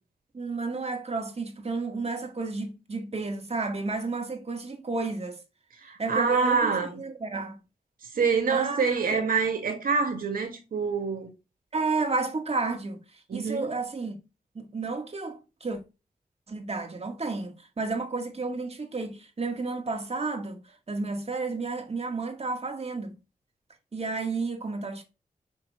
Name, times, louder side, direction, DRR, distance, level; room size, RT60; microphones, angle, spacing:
voice 1, 0.3-5.4 6.0-7.6 8.5-8.8 9.1-9.2 11.7-13.0 13.3-14.2 14.6-15.8 16.5-20.6 20.9-23.2 23.9-25.0, right 3 dB, 45° right, 1.9 m, -31 dB
voice 2, 5.8-7.0 8.1-11.3 13.3-13.7, right 5 dB, 80° right, 1.9 m, -26 dB
5.8 x 5.6 x 3.1 m
cardioid pair, 55°, 15 cm